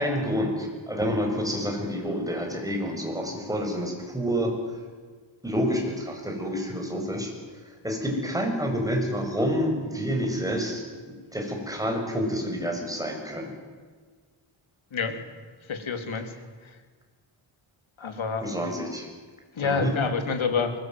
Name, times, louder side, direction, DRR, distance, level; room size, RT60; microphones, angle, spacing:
voice 1, 0.0-4.5 5.4-7.3 7.8-10.8 11.3-13.5 18.4-19.1 19.6-20.0, equal, 5° right, 2 dB, 7.7 m, -28 dB
voice 2, 15.7-16.3 16.6-16.8 18.0-18.5 19.6-20.7, left 5 dB, 70° left, 7 dB, 3.7 m, -28 dB
23.5 x 22.0 x 9.6 m, 1.5 s
wide cardioid pair, 110°, 49 cm